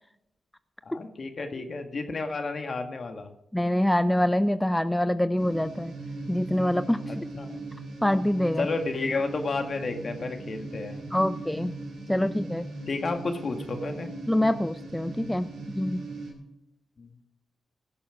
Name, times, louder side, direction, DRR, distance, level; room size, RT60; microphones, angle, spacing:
voice 1, 0.8-3.3 7.3-7.5 8.6-11.0 12.9-14.1 17.0-17.1, left 3 dB, 55° left, 6 dB, 1.9 m, -31 dB
voice 2, 3.5-5.9 6.3-7.3 8.0-8.7 11.1-11.7 12.1-12.7 14.3-15.5 15.7-16.0, left 1 dB, 10° left, 13 dB, 0.5 m, -25 dB
sound 1, 5.4-16.3, right 2 dB, 80° right, 4.1 m, -39 dB
16.5 x 7.0 x 5.1 m, 0.85 s
supercardioid pair, 50°, 0 cm